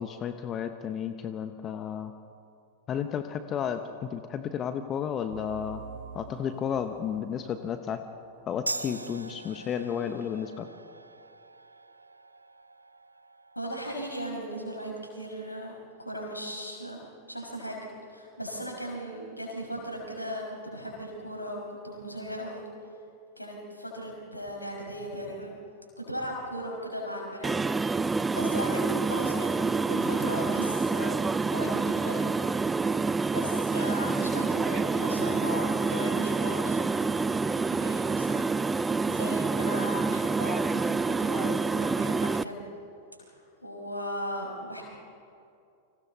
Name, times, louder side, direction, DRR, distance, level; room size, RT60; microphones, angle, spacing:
voice 1, 0.0-2.1 2.9-5.8 6.1-8.0 8.5-10.7, left 8 dB, 30° left, 9 dB, 1.1 m, -32 dB
sound 1, 5.3-10.6, right 6 dB, 65° right, 2.3 m, -48 dB
sound 2, 8.7-15.8, right 2 dB, 85° right, 0.8 m, -43 dB
voice 2, 13.6-17.0 17.3-17.8 18.1-22.7 23.4-25.6 26.0-27.5 27.9-28.0 28.3-31.2 31.5-32.3 33.3-42.6 43.2-44.8, equal, 85° left, -1 dB, 5.7 m, -37 dB
sound 3, 27.4-42.4, right 4 dB, 10° right, 0.5 m, -27 dB
29.5 x 26.0 x 4.1 m, 2.5 s
figure-of-eight pair, 90°, 0 cm